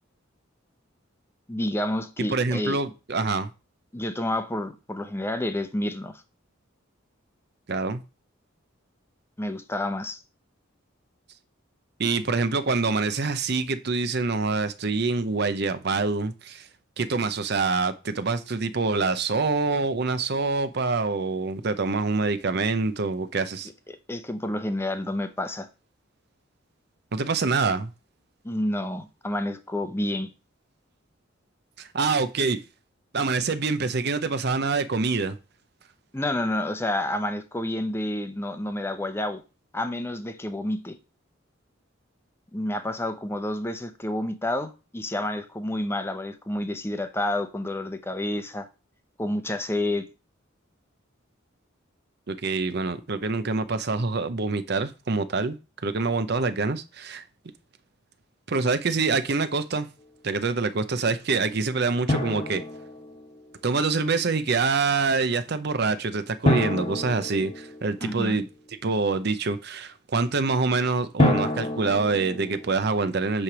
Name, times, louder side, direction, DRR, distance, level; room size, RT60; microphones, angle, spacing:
voice 1, 1.5-2.8 3.9-6.2 9.4-10.2 24.1-25.7 28.4-30.3 36.1-39.4 39.7-41.0 42.5-48.7 49.2-50.1 68.0-68.4, left 1 dB, 10° left, 0.7 m, -29 dB
voice 2, 2.3-3.5 7.7-8.0 12.0-16.7 17.0-23.7 27.1-27.9 31.8-32.6 33.1-35.4 52.3-55.6 55.8-57.2 58.5-59.9 60.2-62.6 63.6-68.5 68.8-73.4, right 4 dB, 55° right, 0.7 m, -25 dB
Drum, 62.1-63.6 66.5-68.2 71.2-72.8, left 1 dB, 25° left, 1.2 m, -27 dB
8.6 x 3.3 x 6.0 m
head